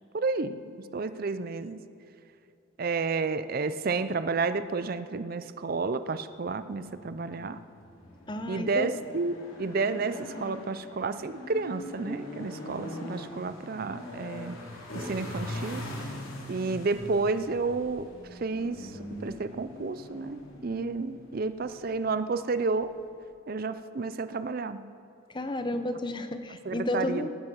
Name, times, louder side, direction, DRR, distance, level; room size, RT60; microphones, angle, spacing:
voice 1, 0.1-1.8 2.8-7.6 8.5-14.6 14.9-16.2 16.5-23.0 23.5-24.9 25.7-25.8 26.5-27.3, right 4 dB, 45° right, 12 dB, 0.5 m, -31 dB
sound 1, 6.4-23.1, left 1 dB, 85° left, 3.1 m, -42 dB
voice 2, 8.3-8.9 25.3-27.3, left 1 dB, 20° left, 9 dB, 0.7 m, -32 dB
18.5 x 9.7 x 6.3 m, 2.8 s
head